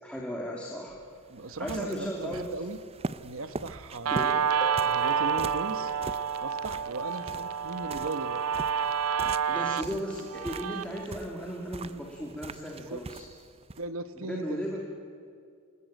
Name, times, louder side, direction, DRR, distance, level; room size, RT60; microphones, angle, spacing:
voice 1, 0.0-1.0 1.6-2.5 4.1-4.4 9.5-13.2 14.1-14.8, equal, 5° left, -2 dB, 2.8 m, -36 dB
sound 1, 0.9-13.9, right 3 dB, 25° right, 0.5 m, -43 dB
voice 2, 1.3-2.8 3.2-4.3 4.8-5.9 6.4-8.5 12.8-13.0 13.8-14.8, right 2 dB, 65° right, 11 dB, 1.3 m, -37 dB
Guitar, 4.1-11.0, right 7 dB, 80° right, 0.6 m, -29 dB
Harp, 4.6-7.1 10.6-10.7, left 1 dB, 25° left, 2.2 m, -46 dB
27.5 x 21.5 x 9.1 m, 2.3 s
head